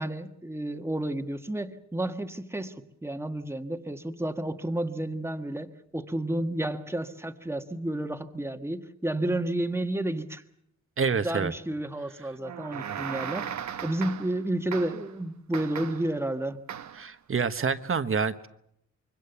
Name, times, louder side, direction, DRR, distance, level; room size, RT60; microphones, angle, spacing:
voice 1, 0.0-10.4 11.2-13.6 13.8-16.6, right 1 dB, 10° right, 7 dB, 1.6 m, -31 dB
voice 2, 11.0-11.5 12.2-12.3 16.9-18.5, right 5 dB, 45° right, 10 dB, 1.3 m, -27 dB
sound 1, 12.4-14.4 14.7-15.1 15.5-16.1 16.7-17.1, right 8 dB, 65° right, 1.1 m, -37 dB
25.5 x 24.0 x 7.1 m, 0.74 s
wide cardioid pair, 110°, 30 cm